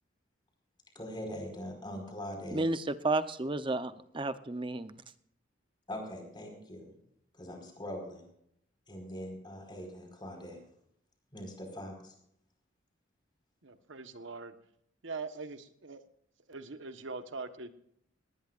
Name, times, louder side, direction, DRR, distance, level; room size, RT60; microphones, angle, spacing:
voice 1, 1.0-2.6 5.9-7.0 7.3-8.2 8.9-10.6 11.3-12.1, equal, 25° left, 3 dB, 5.1 m, -42 dB
voice 2, 2.5-5.0, right 2 dB, 25° right, 11 dB, 0.8 m, -32 dB
voice 3, 13.6-14.5 15.0-16.0 16.5-17.7, right 4 dB, 85° right, 8 dB, 1.4 m, -42 dB
19.0 x 19.0 x 2.6 m, 0.71 s
head